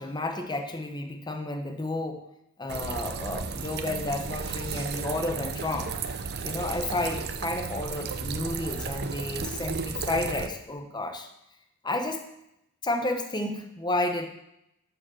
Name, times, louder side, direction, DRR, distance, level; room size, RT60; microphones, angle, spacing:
voice 1, 0.0-2.2 2.6-5.9 6.4-11.3 11.8-12.2 12.8-14.3, left 2 dB, 20° left, 4 dB, 0.9 m, -31 dB
sound 1, 2.7-10.5, right 5 dB, 50° right, 0.7 m, -34 dB
11.0 x 4.9 x 6.3 m, 0.82 s
head